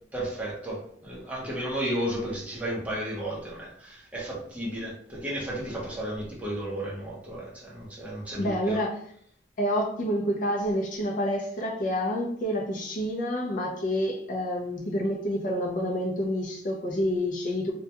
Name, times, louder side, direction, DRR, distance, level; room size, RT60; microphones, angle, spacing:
voice 1, 0.1-8.8, right 1 dB, 10° right, -5 dB, 0.7 m, -33 dB
voice 2, 8.4-9.0 9.6-17.7, equal, 45° left, 0 dB, 0.5 m, -28 dB
2.2 x 2.2 x 2.8 m, 0.62 s
head